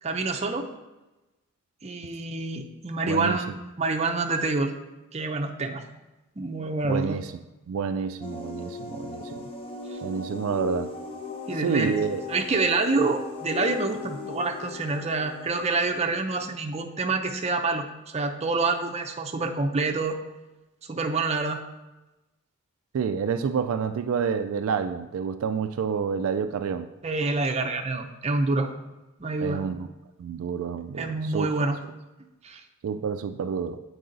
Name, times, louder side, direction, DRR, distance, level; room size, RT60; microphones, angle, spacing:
voice 1, 0.0-0.7 1.8-3.5 3.8-4.7 5.1-5.8 6.4-7.2 11.5-11.9 12.3-20.2 20.9-21.6 27.0-28.7 29.2-29.6 31.0-31.8 32.4-32.6, right 3 dB, 30° right, 4 dB, 0.6 m, -27 dB
voice 2, 3.1-3.4 6.9-7.3 7.7-9.5 10.0-10.9 11.6-12.2 22.9-26.9 29.4-29.9 30.2-31.5 32.8-33.8, right 6 dB, 75° right, 9 dB, 0.3 m, -28 dB
sound 1, 8.2-16.6, left 4 dB, 25° left, 0.8 m, -38 dB
7.8 x 4.7 x 3.8 m, 1.1 s
head